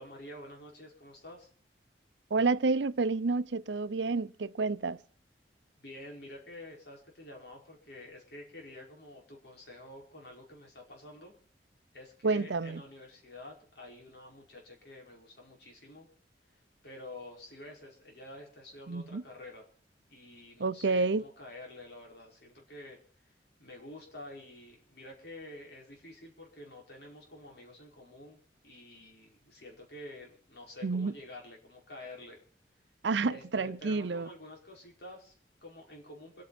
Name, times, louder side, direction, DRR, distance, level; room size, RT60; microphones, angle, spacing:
voice 1, 0.0-1.5 5.8-11.3 11.9-16.1 16.8-19.6 20.1-23.0 23.6-32.4 33.3-36.4, left 1 dB, 65° left, 5.2 m, -49 dB
voice 2, 2.3-5.0 12.2-12.8 18.9-19.2 20.6-21.2 30.8-31.1 33.0-34.3, right 3 dB, 90° right, 0.6 m, -29 dB
26.5 x 9.5 x 4.2 m
head